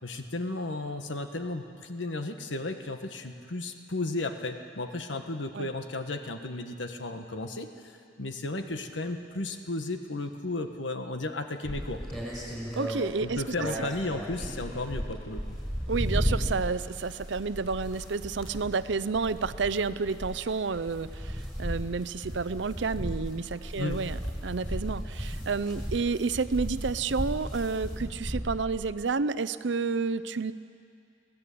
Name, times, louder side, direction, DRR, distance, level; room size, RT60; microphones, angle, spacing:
voice 1, 0.0-12.0 13.2-15.4 23.8-24.0, left 2 dB, 75° left, 6 dB, 1.5 m, -34 dB
sound 1, 11.6-28.9, equal, 5° left, 4.8 m, -35 dB
voice 2, 12.7-13.7 15.9-24.2 24.4-30.5, right 4 dB, 70° right, 15 dB, 0.6 m, -30 dB
23.5 x 17.0 x 8.5 m, 2.4 s
head